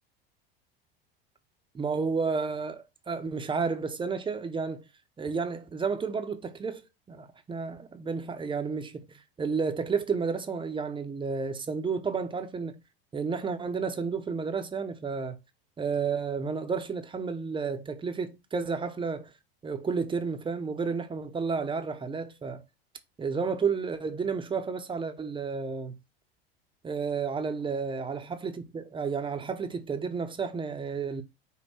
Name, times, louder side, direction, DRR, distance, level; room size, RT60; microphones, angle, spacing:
voice 1, 1.7-4.8 5.2-12.8 13.1-15.4 15.8-19.3 19.6-22.6 23.2-25.9 26.8-31.2, right 5 dB, 15° right, 0.6 m, -31 dB
5.4 x 2.1 x 4.1 m
hypercardioid pair, 85°, 31 cm